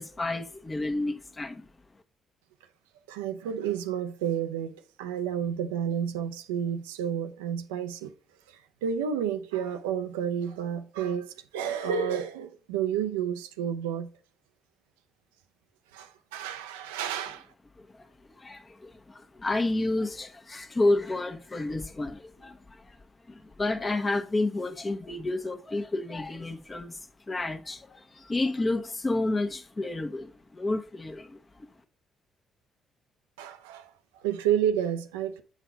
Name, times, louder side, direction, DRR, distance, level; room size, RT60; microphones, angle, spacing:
voice 1, 0.0-1.7 17.9-18.1 18.4-23.0 23.3-27.0 27.3-31.4, left 2 dB, 30° left, 1.0 m, -30 dB
voice 2, 3.1-8.1 8.5-14.1 15.9-17.5 33.4-35.4, right 8 dB, 90° right, 0.5 m, -31 dB
8.0 x 4.0 x 4.4 m
hypercardioid pair, 50°, 0 cm